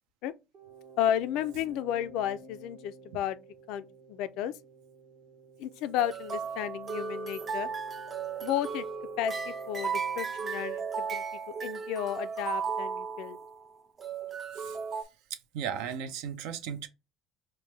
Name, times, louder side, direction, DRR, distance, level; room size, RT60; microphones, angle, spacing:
sound 1, 0.5-12.2, right 3 dB, 60° right, 0.8 m, -51 dB
voice 1, 1.0-3.4 3.7-4.5 5.6-7.7 8.4-8.9 9.2-11.2 11.6-13.4, left 11 dB, 80° left, 0.3 m, -33 dB
sound 2, 6.0-13.7 14.0-15.0, right 6 dB, 35° right, 0.4 m, -35 dB
voice 2, 15.3-16.9, right 8 dB, 85° right, 0.6 m, -36 dB
4.4 x 2.1 x 3.2 m
cardioid pair, 105°, 0 cm